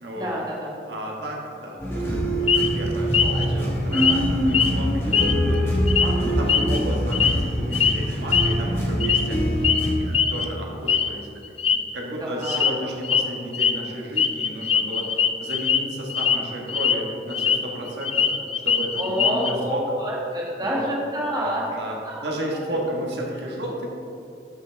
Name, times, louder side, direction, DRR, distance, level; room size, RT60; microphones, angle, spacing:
voice 1, 0.1-0.7 12.2-12.7 19.0-21.6 22.0-22.3, equal, 20° right, -4 dB, 1.5 m, -28 dB
voice 2, 0.9-9.4 10.0-11.3 11.7-18.3 18.6-19.8 20.6-20.9 21.3-22.0 22.2-23.9, equal, 70° right, -2 dB, 1.5 m, -33 dB
sound 1, 1.8-9.9, equal, 15° left, 1.7 m, -24 dB
sound 2, 2.5-2.7 3.1-3.4 3.9-4.2 4.5-4.7 5.1-5.6 5.9-6.1 6.5-7.4 7.7-7.9 8.3-8.5 9.0-9.3 9.6-9.9 10.1-10.4 10.9-11.1 11.4-11.8 12.4-12.7 13.0-13.2 13.5-13.7 14.2-15.8 16.1-16.4 16.7-17.6 17.9-19.5, left 7 dB, 30° left, 0.3 m, -21 dB
13.0 x 6.0 x 3.4 m, 2.7 s
head